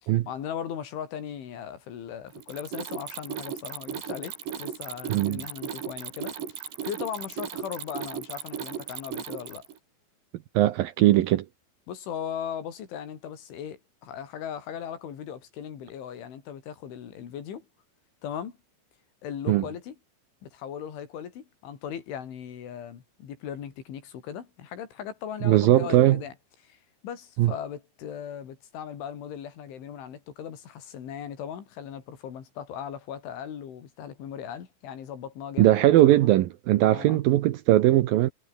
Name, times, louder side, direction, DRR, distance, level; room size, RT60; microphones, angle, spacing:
voice 1, 0.0-6.4 6.8-9.7 11.9-17.7 18.2-18.6 19.2-19.9 20.4-26.3 26.6-35.9 36.9-37.2, left 9 dB, 80° left, 5.9 m, -38 dB
Mechanisms, 2.3-9.8, right 8 dB, 65° right, 5.3 m, -36 dB
voice 2, 5.1-5.4 10.5-11.5 19.5-19.6 25.4-26.2 27.4-27.5 35.6-38.3, right 14 dB, 85° right, 2.0 m, -20 dB
omnidirectional pair, 5.4 m